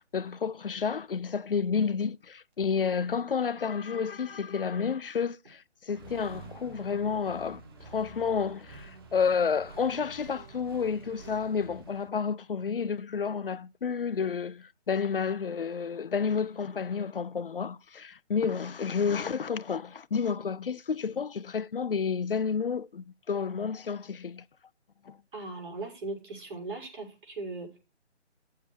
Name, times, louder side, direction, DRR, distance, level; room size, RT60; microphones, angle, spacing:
voice 1, 0.0-24.4 25.0-25.2, left 6 dB, 50° left, 0.6 m, -30 dB
Accelerating revving vroom, 5.9-12.1, right 4 dB, 20° right, 1.1 m, -48 dB
voice 2, 25.3-27.8, right 3 dB, 45° right, 6.0 m, -38 dB
13.0 x 7.5 x 4.4 m
figure-of-eight pair, 155°, 35 cm